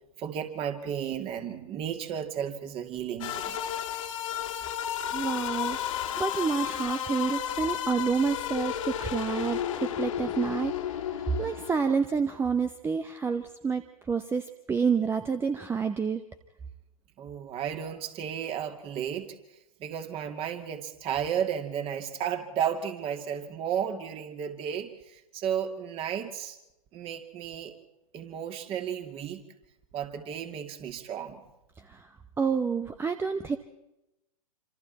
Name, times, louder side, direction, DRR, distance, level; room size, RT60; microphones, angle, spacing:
voice 1, 0.2-3.6 17.2-19.3 19.8-26.6 26.9-27.7 28.1-29.4 29.9-31.4, right 8 dB, 30° right, 6 dB, 2.6 m, -33 dB
sound 1, 3.2-12.0, left 10 dB, 55° left, 2.4 m, -33 dB
voice 2, 5.1-13.8 14.1-16.2 31.8-32.1 32.4-33.6, right 5 dB, 10° right, 10 dB, 0.9 m, -29 dB
27.0 x 26.5 x 4.3 m, 0.90 s
figure-of-eight pair, 105°, 20 cm